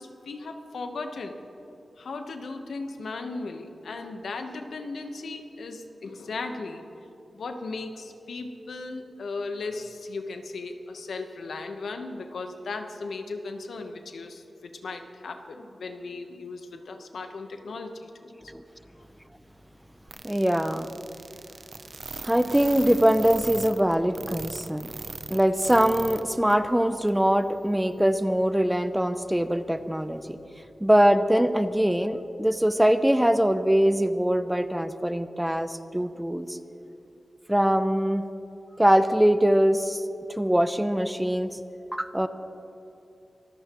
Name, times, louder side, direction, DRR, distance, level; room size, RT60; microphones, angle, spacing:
voice 1, 0.0-1.4 2.0-6.8 7.3-18.5, left 3 dB, 90° left, 6 dB, 1.0 m, -37 dB
sound 1, 20.1-26.2 26.5-26.6 27.1-27.2, right 4 dB, 55° right, 0.6 m, -38 dB
voice 2, 20.2-20.9 22.2-24.9 25.3-30.4 30.8-36.6 37.5-38.2 38.8-40.0 40.4-41.6 41.9-42.3, equal, 5° right, 11 dB, 0.6 m, -23 dB
25.0 x 14.5 x 3.0 m, 2.8 s
wide cardioid pair, 90°, 0 cm